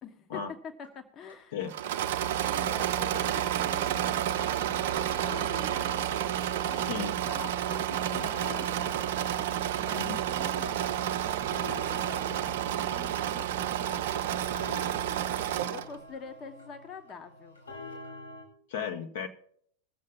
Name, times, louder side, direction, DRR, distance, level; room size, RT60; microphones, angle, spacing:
voice 1, 0.0-1.6 2.5-6.9 7.2-8.9 9.3-14.3 15.7-17.6, left 6 dB, 30° left, 8 dB, 1.1 m, -46 dB
sound 1, 0.8-0.9 1.3-1.4 1.8-1.9 2.2-2.3 2.7-2.8 3.2-3.3 3.7-3.8 4.2-4.3 4.7-4.8 5.1-18.4, left 2 dB, 80° left, 4.6 m, -47 dB
Engine / Mechanisms, 1.7-15.9, right 11 dB, 55° right, 0.6 m, -30 dB
voice 2, 6.8-7.2 8.1-8.3 10.0-10.2 18.7-19.3, left 7 dB, 55° left, 4 dB, 1.0 m, -35 dB
21.0 x 7.5 x 3.6 m, 0.63 s
figure-of-eight pair, 90°, 0 cm